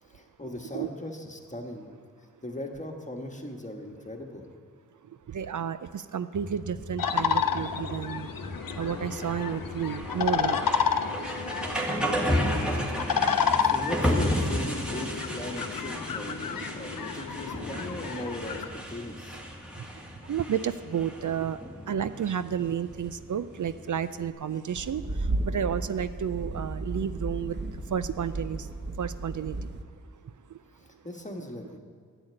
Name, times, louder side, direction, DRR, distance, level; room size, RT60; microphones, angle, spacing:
voice 1, 0.0-1.9 2.4-4.4 12.2-13.1 13.6-19.4 30.8-31.8, left 1 dB, 20° left, 2 dB, 1.5 m, -39 dB
voice 2, 5.3-8.3 8.8-10.6 19.8-19.9 20.3-21.6 21.9-27.6 27.9-28.7 29.0-29.7, right 8 dB, 65° right, 13 dB, 0.5 m, -31 dB
sound 1, 6.3-24.3, equal, 5° right, 2.1 m, -33 dB
sound 2, 7.0-18.7, left 7 dB, 85° left, 0.7 m, -30 dB
sound 3, 24.7-29.8, right 2 dB, 30° right, 1.0 m, -34 dB
10.5 x 8.1 x 8.9 m, 2.1 s
wide cardioid pair, 70°, 33 cm